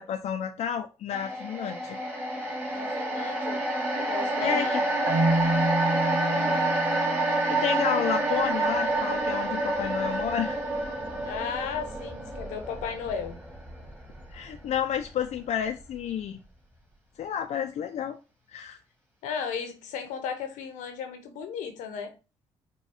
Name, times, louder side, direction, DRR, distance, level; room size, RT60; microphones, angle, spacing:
voice 1, 0.0-2.0 4.4-4.8 7.5-10.6 14.3-16.4 17.2-18.2 18.5-18.8, left 8 dB, 65° left, 0.5 m, -30 dB
sound 1, 1.1-15.5 15.8-16.0, right 2 dB, 15° right, 1.8 m, -29 dB
voice 2, 2.7-3.6 4.1-5.0 6.3-6.6 11.2-13.4 19.2-22.1, left 6 dB, 85° left, 0.8 m, -35 dB
Marimba xylophone, 5.1-8.0, right 1 dB, 45° right, 1.6 m, -28 dB
4.8 x 2.3 x 4.2 m
supercardioid pair, 50°, 13 cm